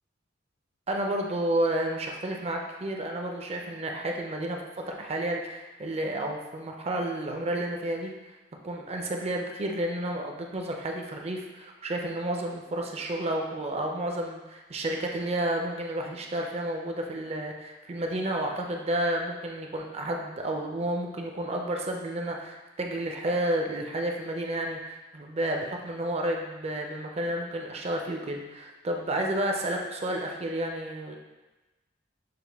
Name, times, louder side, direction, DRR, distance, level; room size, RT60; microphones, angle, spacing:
voice 1, 0.9-8.1 8.6-31.2, right 1 dB, 35° right, 1 dB, 0.5 m, -31 dB
6.4 x 2.2 x 3.4 m, 1.1 s
head